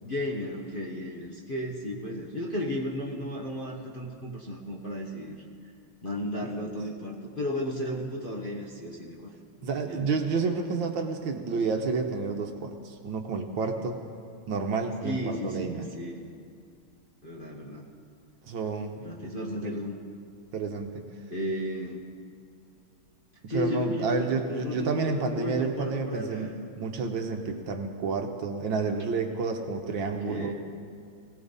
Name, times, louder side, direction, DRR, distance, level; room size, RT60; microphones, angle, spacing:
voice 1, 0.0-5.4 6.0-9.3 9.6-10.1 15.0-16.3 17.2-17.9 19.0-20.0 21.3-22.1 23.5-26.6 30.0-30.5, left 1 dB, 30° left, -4 dB, 1.2 m, -34 dB
voice 2, 9.6-14.0 14.5-15.9 18.5-19.0 19.6-19.8 20.5-21.0 23.4-26.5 26.8-30.5, right 4 dB, 65° right, 4 dB, 1.6 m, -30 dB
21.5 x 16.5 x 4.1 m, 2.3 s
omnidirectional pair, 2.4 m